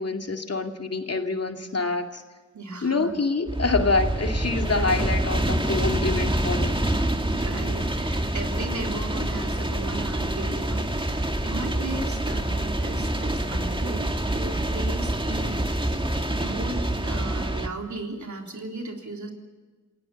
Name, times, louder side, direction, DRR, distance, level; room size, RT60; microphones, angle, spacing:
voice 1, 0.0-2.2 2.8-6.9, left 3 dB, 55° left, 4 dB, 2.4 m, -26 dB
voice 2, 2.5-3.1 7.3-15.6 16.3-19.3, right 3 dB, 75° right, 1 dB, 3.7 m, -36 dB
sound 1, 3.5-17.7, right 1 dB, 15° right, 2.0 m, -26 dB
28.0 x 17.5 x 7.2 m, 1.3 s
cardioid pair, 40°, 29 cm